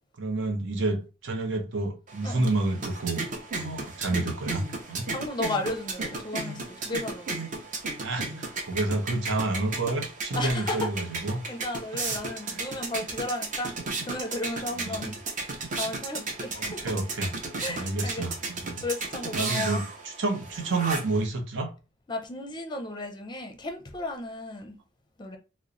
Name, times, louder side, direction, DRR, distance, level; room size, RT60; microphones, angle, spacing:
voice 1, 0.2-3.2 3.5-5.1 8.0-11.4 12.1-12.2 12.5-12.6 14.8-15.1 16.6-17.3 17.6-18.4 18.6-18.8 19.3-21.7, right 2 dB, 70° right, 0.8 m, -29 dB
sound 1, 2.1-21.3, right 3 dB, 40° right, 0.6 m, -35 dB
voice 2, 5.1-7.4 10.3-10.9 11.5-15.1 15.7-16.9 17.6-18.2 18.8-19.8 22.1-24.7 25.2-25.4, left 2 dB, 20° left, 0.5 m, -34 dB
3.0 x 2.1 x 3.8 m
head